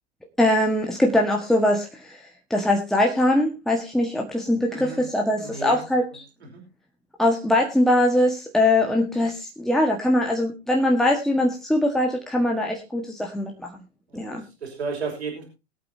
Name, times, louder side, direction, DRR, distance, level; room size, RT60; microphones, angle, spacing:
voice 1, 0.4-6.0 7.2-13.8 14.1-14.4, left 1 dB, ahead, 0 dB, 1.6 m, -22 dB
voice 2, 4.7-5.0 5.3-5.8 6.5-6.6 14.1-15.5, right 4 dB, 75° right, 1 dB, 5.3 m, -33 dB
22.0 x 8.7 x 2.8 m, 0.27 s
figure-of-eight pair, 110°, 33 cm